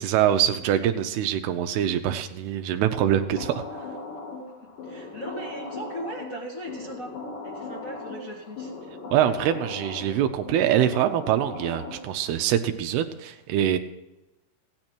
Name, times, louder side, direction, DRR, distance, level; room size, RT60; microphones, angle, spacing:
voice 1, 0.0-3.6 9.1-13.8, right 10 dB, 85° right, 7 dB, 2.7 m, -24 dB
sound 1, 2.9-12.3, left 3 dB, 75° left, 5.3 m, -38 dB
voice 2, 4.5-7.1 7.4-8.7, equal, 35° left, -4 dB, 1.3 m, -38 dB
16.0 x 9.7 x 4.4 m, 0.99 s
omnidirectional pair, 4.6 m